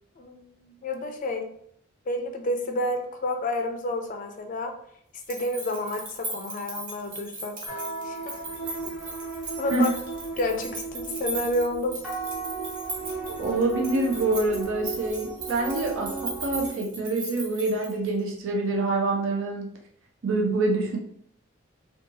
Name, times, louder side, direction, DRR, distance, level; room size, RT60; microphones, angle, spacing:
voice 1, 0.2-1.5 2.1-4.7 5.3-8.4 9.6-9.9 10.4-12.0, left 1 dB, 40° left, 5 dB, 0.4 m, -30 dB
sound 1, 5.1-18.2, right 2 dB, 40° right, 0.8 m, -38 dB
sound 2, 7.7-16.7, right 4 dB, 5° right, 0.7 m, -35 dB
voice 2, 13.3-19.8 20.2-21.0, right 2 dB, 70° right, 0 dB, 0.5 m, -26 dB
2.7 x 2.3 x 2.6 m, 0.66 s
head